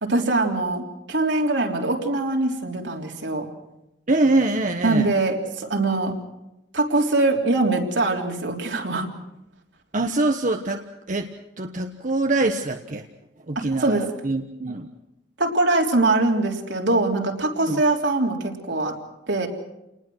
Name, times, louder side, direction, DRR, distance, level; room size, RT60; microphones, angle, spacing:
voice 1, 0.0-3.5 4.8-6.1 6.7-9.1 13.6-14.0 15.4-19.0 19.3-19.5, right 2 dB, 70° right, 2 dB, 3.5 m, -22 dB
voice 2, 4.1-5.1 9.9-10.8 11.1-13.0 13.5-14.9 17.7-17.8, right 2 dB, 45° right, 5 dB, 1.2 m, -24 dB
29.0 x 19.5 x 6.3 m, 0.90 s
head